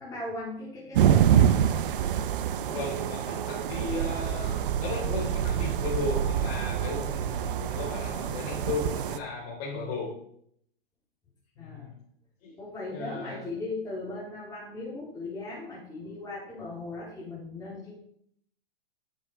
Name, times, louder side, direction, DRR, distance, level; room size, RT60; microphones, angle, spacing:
voice 1, 0.0-1.6 11.6-11.9 12.6-17.9, left 2 dB, 10° left, -7 dB, 4.0 m, -38 dB
sound 1, 1.0-9.2, right 9 dB, 60° right, 0.9 m, -26 dB
voice 2, 2.7-10.1 11.6-11.9 12.4-12.6 12.9-13.4, left 3 dB, 40° left, -6 dB, 3.6 m, -35 dB
8.9 x 7.1 x 4.9 m, 0.69 s
hypercardioid pair, 125°, 30 cm